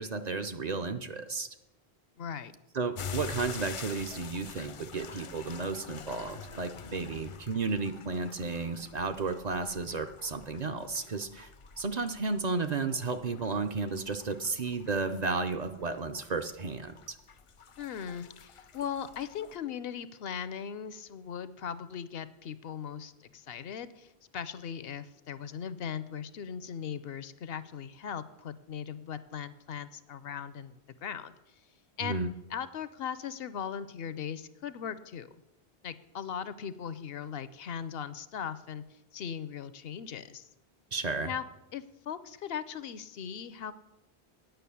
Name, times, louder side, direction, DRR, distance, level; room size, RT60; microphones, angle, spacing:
voice 1, 0.0-1.5 2.7-11.5 11.8-17.2 32.0-32.3 40.9-41.3, right 4 dB, 50° right, 8 dB, 0.6 m, -33 dB
voice 2, 2.2-2.5 17.8-31.3 32.0-32.2 32.5-35.3 35.8-40.5 41.2-41.4 41.7-43.7, left 8 dB, 70° left, 14 dB, 0.8 m, -39 dB
sound 1, 2.9-19.6, left 6 dB, 50° left, 0.4 m, -47 dB
9.2 x 6.1 x 8.3 m, 0.99 s
omnidirectional pair, 1.0 m